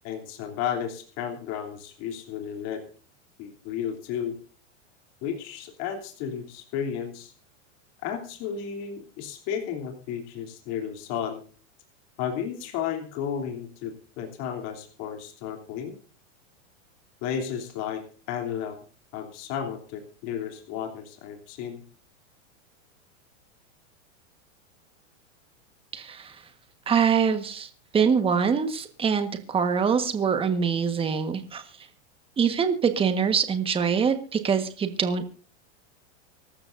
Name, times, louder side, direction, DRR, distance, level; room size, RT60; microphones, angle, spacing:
voice 1, 0.0-2.8 3.4-4.4 5.2-7.3 8.0-11.4 12.2-16.0 17.2-18.8 19.1-21.8, left 8 dB, 45° left, 3 dB, 3.2 m, -33 dB
voice 2, 25.9-26.4 26.9-31.6 32.4-35.3, right 6 dB, 15° right, 8 dB, 1.4 m, -24 dB
25.0 x 13.0 x 2.6 m, 0.38 s
supercardioid pair, 150°, 38 cm